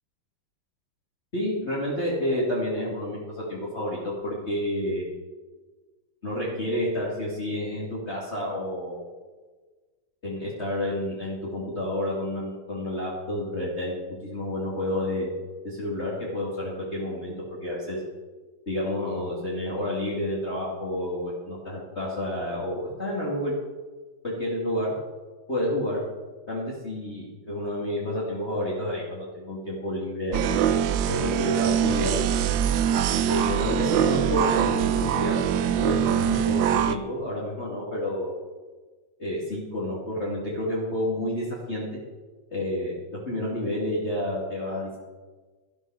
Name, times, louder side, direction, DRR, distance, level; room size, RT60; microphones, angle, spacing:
voice 1, 1.3-5.0 6.2-9.1 10.2-13.9 14.2-15.3 15.6-17.3 17.6-18.0 18.7-23.6 24.2-24.9 25.5-26.0 26.5-30.6 31.1-32.1 33.3-35.4 35.8-38.4 39.2-41.9 42.5-45.0, left 1 dB, 30° left, -6 dB, 2.6 m, -29 dB
sound 1, 30.3-37.0, right 9 dB, 75° right, 1.3 m, -23 dB
13.5 x 12.0 x 4.8 m, 1.3 s
omnidirectional pair, 2.3 m